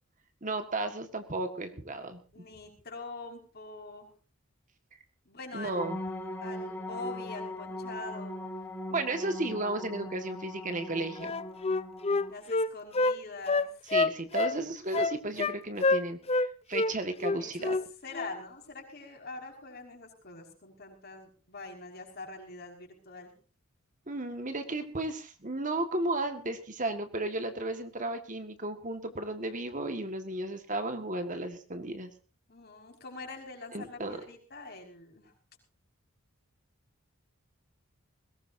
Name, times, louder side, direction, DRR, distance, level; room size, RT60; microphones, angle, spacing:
voice 1, 0.4-2.2 5.5-6.0 8.9-11.3 13.9-17.8 24.1-32.1 33.7-34.2, right 2 dB, 35° right, 7 dB, 1.8 m, -34 dB
voice 2, 2.3-4.1 5.3-5.8 6.4-8.5 12.3-13.9 17.4-17.7 18.0-23.4 32.5-35.3, left 3 dB, 45° left, 1 dB, 5.7 m, -44 dB
sound 1, 5.7-12.3, left 1 dB, 10° left, 3.7 m, -40 dB
Wind instrument woodwind instrument, 11.2-13.2 13.5-14.6 14.9-15.6 15.8-16.5 16.7-16.9 17.2-17.8 18.1-18.3, left 3 dB, 30° left, 0.7 m, -27 dB
21.5 x 19.0 x 2.8 m, 0.37 s
head